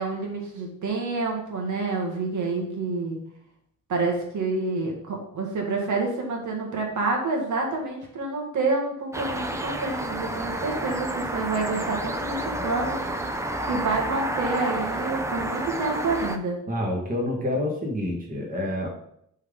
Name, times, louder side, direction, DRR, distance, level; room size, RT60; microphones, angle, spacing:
voice 1, 0.0-3.2 3.9-13.3 13.7-16.6, right 3 dB, 70° right, 0 dB, 1.7 m, -28 dB
sound 1, 9.1-16.4, right 1 dB, 10° right, 0.5 m, -30 dB
voice 2, 16.7-18.9, left 1 dB, 25° right, -1 dB, 1.5 m, -28 dB
10.5 x 3.8 x 3.8 m, 0.71 s
wide cardioid pair, 150°, 31 cm